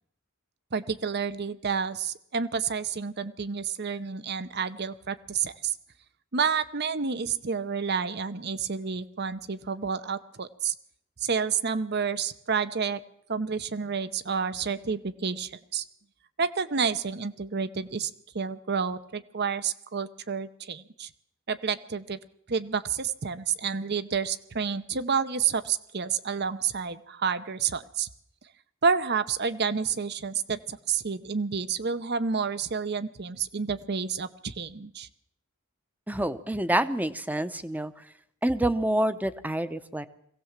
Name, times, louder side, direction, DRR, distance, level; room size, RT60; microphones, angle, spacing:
voice 1, 0.7-5.7 6.3-10.7 11.2-13.0 13.3-15.8 16.4-21.1 21.5-22.2 22.5-28.1 28.8-35.1, right 6 dB, 50° right, 15 dB, 0.8 m, -29 dB
voice 2, 36.1-37.9 38.4-40.1, right 1 dB, 10° right, 12 dB, 0.8 m, -27 dB
22.5 x 17.0 x 7.4 m, 0.71 s
head